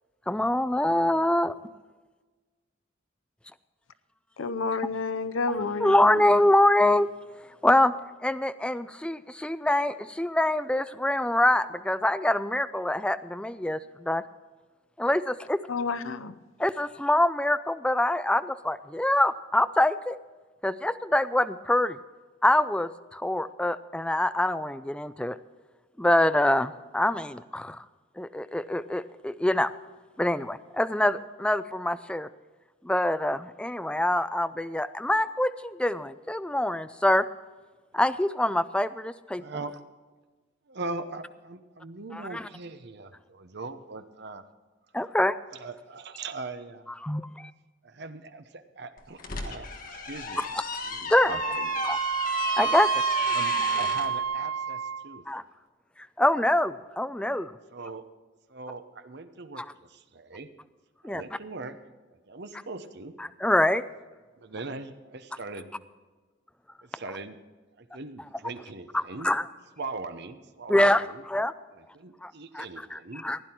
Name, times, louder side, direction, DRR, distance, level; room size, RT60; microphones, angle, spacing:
voice 1, 0.3-1.5 5.8-7.1 7.6-7.9 8.2-14.2 15.0-15.6 16.6-20.2 20.6-22.0 22.4-25.4 26.0-27.8 28.2-29.7 30.2-32.3 32.8-37.2 37.9-39.4 42.1-42.4 44.9-45.4 47.0-47.3 51.1-51.3 51.8-52.0 52.6-52.9 55.3-55.4 56.2-57.5 59.6-59.7 61.0-61.2 63.2-63.8 68.9-69.4 70.7-71.5 72.2-72.7 72.9-73.4, left 1 dB, 5° left, 12 dB, 0.3 m, -25 dB
voice 2, 4.4-6.3 15.7-16.3, left 4 dB, 85° left, 13 dB, 0.7 m, -30 dB
voice 3, 39.3-39.8 40.7-44.4 45.5-46.9 47.8-50.4 50.8-51.9 53.2-55.2 57.7-58.0 58.5-60.5 61.0-61.8 62.3-63.2 64.4-65.8 66.8-67.4 67.8-69.3 69.8-71.2 71.7-73.2, right 3 dB, 55° right, 9 dB, 0.9 m, -40 dB
sound 1, 49.0-54.1, left 4 dB, 45° left, 1.5 m, -35 dB
Wind instrument woodwind instrument, 51.3-55.2, right 6 dB, 90° right, 0.4 m, -28 dB
16.0 x 10.5 x 4.5 m, 1.3 s
head